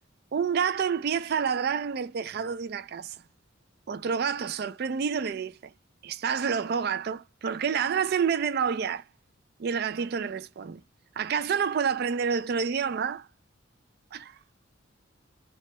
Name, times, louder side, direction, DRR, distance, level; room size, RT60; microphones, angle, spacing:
voice 1, 0.3-3.2 3.9-5.6 6.0-9.0 9.6-10.8 11.2-13.3 14.1-14.4, right 6 dB, 55° right, 0.4 m, -28 dB
2.9 x 2.3 x 2.9 m
head